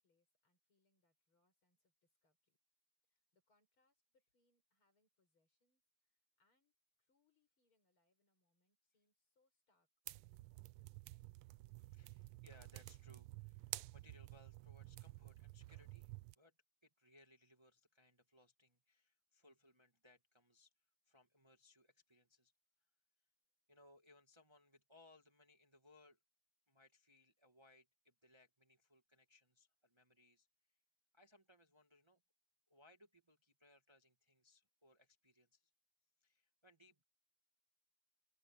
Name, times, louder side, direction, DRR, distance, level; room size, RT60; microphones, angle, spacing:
voice 1, 0.0-2.6 3.1-5.8 6.1-11.2, left 2 dB, 70° left, 7.0 m, -84 dB
sound 1, 10.1-16.3, right 18 dB, 80° right, 1.5 m, -52 dB
voice 2, 11.8-16.5 16.8-20.7 21.1-22.5 23.7-26.2 26.7-30.5 31.1-32.2 32.7-35.7 36.2-37.0, left 1 dB, 15° right, 1.6 m, -68 dB
open air
omnidirectional pair, 2.4 m